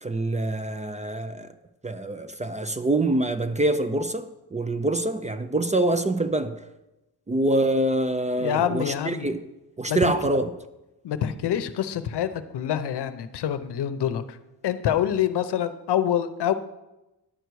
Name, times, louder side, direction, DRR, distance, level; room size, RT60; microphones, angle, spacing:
voice 1, 0.0-1.5 1.8-6.6 7.3-9.4 9.8-10.5, right 2 dB, 20° right, 0.4 m, -25 dB
voice 2, 8.4-9.3 9.9-10.1 11.0-14.4 14.6-16.5, left 10 dB, 80° left, 0.7 m, -26 dB
10.5 x 8.0 x 4.7 m
wide cardioid pair, 135°, 40 cm